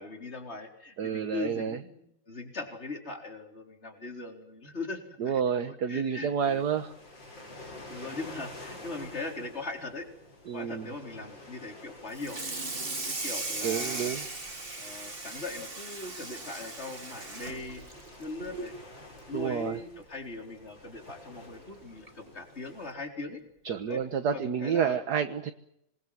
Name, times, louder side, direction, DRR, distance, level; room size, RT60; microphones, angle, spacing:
voice 1, 0.0-6.6 7.9-10.1 10.5-12.4 13.0-14.1 14.8-17.8 18.2-18.7 19.3-23.4 23.9-24.0 24.3-25.0, left 3 dB, 35° left, 4 dB, 4.5 m, -40 dB
voice 2, 1.0-1.8 5.2-6.9 10.5-10.9 13.6-14.2 19.3-19.8 23.7-25.5, right 7 dB, 60° right, 9 dB, 1.7 m, -29 dB
sound 1, 6.4-22.9, left 2 dB, 90° left, 7.8 m, -50 dB
Water tap faucet / Sink (filling or washing), 12.1-18.8 19.2-19.4 19.8-19.9 20.3-20.4 21.5-21.6 22.1-22.3, right 2 dB, 30° right, 2.7 m, -38 dB
26.5 x 21.5 x 7.6 m, 0.78 s
omnidirectional pair, 2.0 m